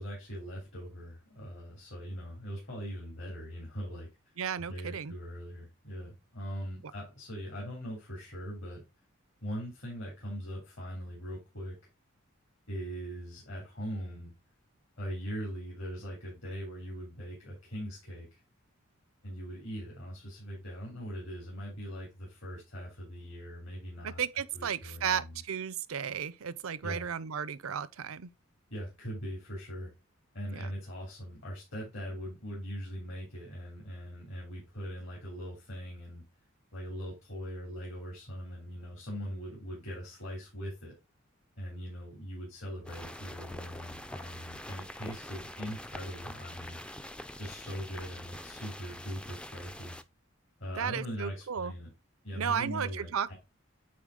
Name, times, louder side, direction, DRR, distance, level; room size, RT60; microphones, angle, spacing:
voice 1, 0.0-4.1 4.6-8.8 9.4-11.7 12.7-14.3 15.0-18.4 19.2-24.2 24.5-25.4 26.8-27.0 28.7-29.9 30.3-36.2 36.7-40.9 41.6-46.8 47.4-50.0 50.6-51.9 52.2-53.3, equal, 65° left, 3.2 m, -41 dB
voice 2, 4.4-5.1 24.0-28.3 30.6-30.7 50.8-51.7 52.3-53.3, right 7 dB, 85° right, 0.6 m, -34 dB
sound 1, 42.9-50.0, left 1 dB, 5° left, 0.3 m, -45 dB
8.5 x 4.4 x 3.7 m
head